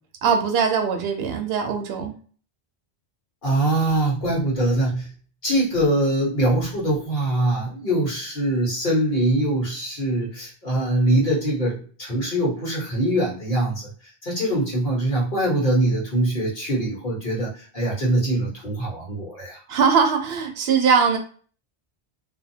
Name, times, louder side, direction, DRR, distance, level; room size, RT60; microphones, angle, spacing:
voice 1, 0.2-2.2 19.7-21.2, right 6 dB, 80° right, 4 dB, 0.8 m, -21 dB
voice 2, 3.4-5.1 5.4-13.9 14.2-19.6, right 1 dB, 55° left, -5 dB, 1.4 m, -23 dB
2.6 x 2.4 x 2.7 m, 0.42 s
omnidirectional pair, 1.0 m